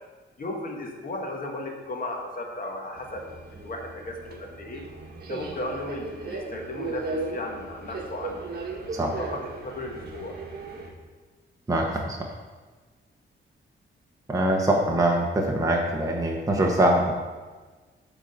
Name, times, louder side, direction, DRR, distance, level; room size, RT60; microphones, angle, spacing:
voice 1, 0.4-3.2 3.5-4.8 5.3-8.5 9.2-10.3, left 1 dB, 45° left, 1 dB, 1.5 m, -35 dB
Subway metro underground, 3.0-10.9, right 3 dB, 50° right, 1.5 m, -37 dB
voice 2, 11.7-12.3 14.3-17.1, right 1 dB, 15° right, 0 dB, 1.0 m, -23 dB
9.1 x 4.0 x 6.7 m, 1.3 s
cardioid pair, 115°, 21 cm